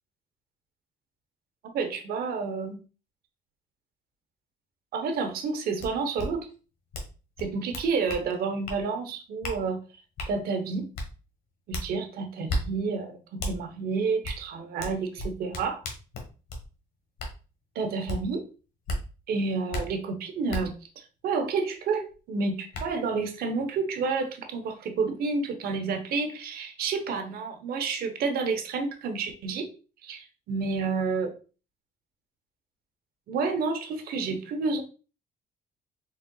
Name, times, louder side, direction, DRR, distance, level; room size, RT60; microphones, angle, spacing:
voice 1, 1.7-2.8 4.9-6.5 7.4-9.8 10.3-10.8 11.7-15.8 17.7-18.4 19.3-29.7 30.0-31.3 33.3-34.8, right 4 dB, 65° right, 6 dB, 0.9 m, -30 dB
sound 1, 5.8-5.9 6.2-6.3 6.9-7.1 7.4-8.2 8.7-8.8 9.4-9.6 10.2-10.3 10.9-11.1 11.7-11.9 12.5-12.6 13.4-13.5 14.2-14.4 14.8-16.6 17.2-17.3 18.1-18.2 18.9-19.0 19.7-19.8 20.5-20.6 22.1-22.2 22.7-22.8, left 1 dB, 60° left, 1.2 m, -32 dB
4.3 x 3.7 x 2.2 m, 0.34 s
cardioid pair, 110°, 17 cm